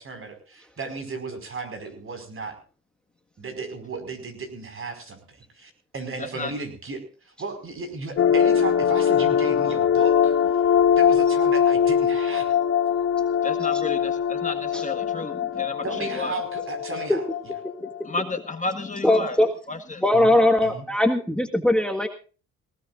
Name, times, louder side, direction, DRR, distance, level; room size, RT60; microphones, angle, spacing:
voice 1, 0.0-2.6 3.4-10.3 11.0-12.6 15.8-17.2 20.1-20.4 20.6-20.8, right 4 dB, 45° right, 7 dB, 5.2 m, -35 dB
voice 2, 6.2-6.5 13.4-16.3 18.0-19.4 19.7-20.0, left 3 dB, 25° left, 7 dB, 1.6 m, -32 dB
sound 1, 8.2-18.0, left 8 dB, 50° left, 1.2 m, -22 dB
voice 3, 19.0-19.5 20.0-22.1, left 1 dB, 5° left, 4 dB, 1.6 m, -20 dB
19.5 x 18.5 x 2.5 m, 0.37 s
cardioid pair, 90°, 30 cm